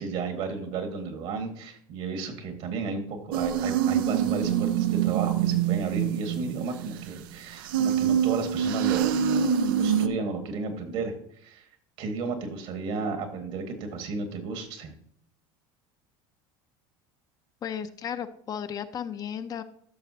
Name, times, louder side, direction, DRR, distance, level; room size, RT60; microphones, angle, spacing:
voice 1, 0.0-11.1 11.4-11.7 12.0-14.9, right 4 dB, 65° right, 6 dB, 1.7 m, -33 dB
sound 1, 3.3-7.3 7.6-10.1, right 9 dB, 90° right, 0.5 m, -25 dB
voice 2, 17.6-19.6, left 8 dB, 35° left, 10 dB, 0.5 m, -34 dB
12.5 x 5.9 x 2.8 m, 0.64 s
supercardioid pair, 120°, 11 cm